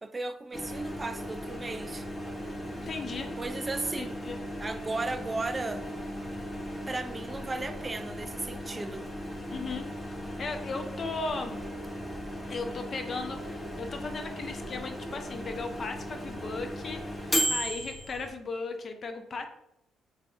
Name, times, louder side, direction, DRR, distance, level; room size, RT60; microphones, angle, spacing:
voice 1, 0.0-2.1 3.4-4.2 4.6-5.8 6.9-9.1, right 3 dB, 25° right, 0.3 m, -35 dB
Microwave oven, 0.5-18.3, equal, 25° left, 0.9 m, -36 dB
voice 2, 2.7-3.3 4.0-4.4 9.5-11.6 12.5-19.5, left 4 dB, 45° left, 0.5 m, -37 dB
3.4 x 3.3 x 2.5 m
cardioid pair, 90°, 0 cm